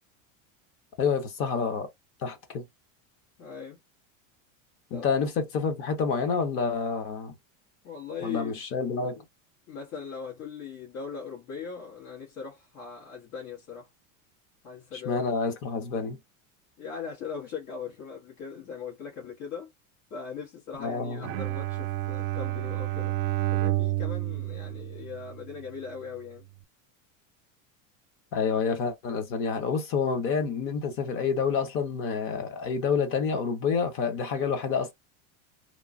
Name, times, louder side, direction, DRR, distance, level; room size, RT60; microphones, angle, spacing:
voice 1, 1.0-1.9 2.2-2.6 4.9-7.3 8.2-9.2 15.0-16.2 20.8-21.4 28.3-34.9, left 5 dB, 35° left, 0.7 m, -28 dB
voice 2, 3.4-3.8 4.9-5.1 7.8-8.6 9.7-13.9 14.6-15.2 16.8-19.7 20.1-23.1 23.5-26.5, left 6 dB, 80° left, 1.6 m, -39 dB
Bowed string instrument, 21.2-25.6, right 17 dB, 85° right, 0.6 m, -30 dB
3.0 x 2.2 x 2.5 m
supercardioid pair, 160°, 40 cm